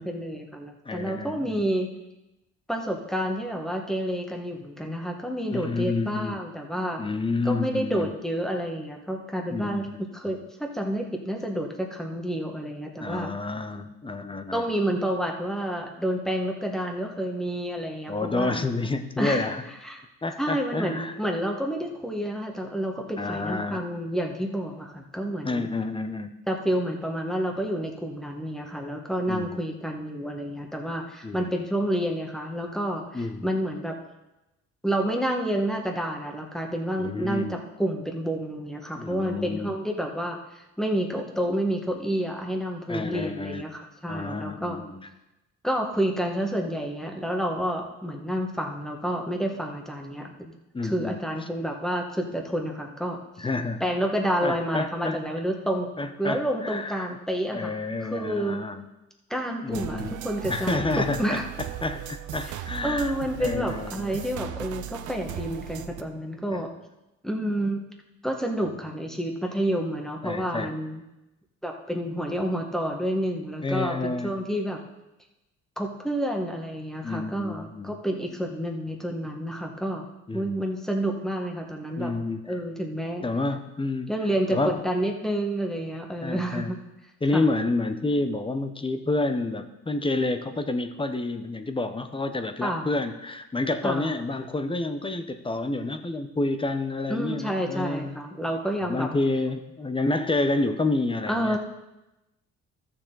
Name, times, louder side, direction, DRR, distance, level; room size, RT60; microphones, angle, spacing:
voice 1, 0.0-1.9 2.7-7.0 7.4-9.9 10.1-13.3 14.5-18.6 19.2-19.5 19.8-20.0 20.4-25.7 26.5-33.9 34.8-44.8 45.6-50.5 50.8-53.5 53.8-55.9 56.2-57.7 58.0-58.6 59.3-61.5 62.8-66.7 67.2-67.8 68.2-71.0 71.6-74.8 75.8-80.1 80.3-82.1 82.5-83.2 84.1-86.8 87.3-87.5 92.6-92.9 93.8-94.1 97.1-99.1 101.3-101.6, equal, ahead, 2 dB, 1.6 m, -29 dB
voice 2, 0.9-1.6 5.5-6.4 7.0-8.1 9.5-10.0 10.3-10.4 13.0-14.6 18.1-19.6 20.2-21.1 23.2-23.8 25.4-26.3 29.3-29.6 31.2-31.4 33.1-33.5 37.0-37.5 38.9-39.8 42.9-43.6 44.1-45.1 50.7-51.2 53.4-53.8 54.4-55.2 56.0-57.1 57.5-58.8 59.6-60.2 60.5-61.4 61.8-63.1 63.4-64.3 66.5-66.6 70.2-70.7 73.6-74.3 77.0-78.0 80.3-80.5 82.0-82.4 83.2-84.1 84.5-84.8 86.2-86.7 87.2-98.2 98.8-101.6, left 2 dB, 15° left, 8 dB, 0.8 m, -29 dB
sound 1, 59.7-66.0, right 12 dB, 80° right, 0.7 m, -37 dB
13.5 x 6.8 x 4.0 m, 0.96 s
cardioid pair, 90°, 30 cm